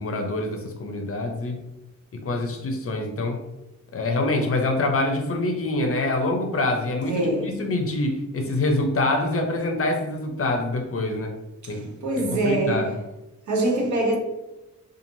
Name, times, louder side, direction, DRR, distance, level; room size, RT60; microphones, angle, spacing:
voice 1, 0.0-1.6 2.1-3.4 3.9-11.3 11.7-12.9, left 2 dB, 50° left, 0.5 m, -25 dB
voice 2, 7.1-7.6 11.6-13.0 13.5-14.2, right 1 dB, 70° right, 0.7 m, -24 dB
3.0 x 2.4 x 2.6 m
wide cardioid pair, 115°, 30 cm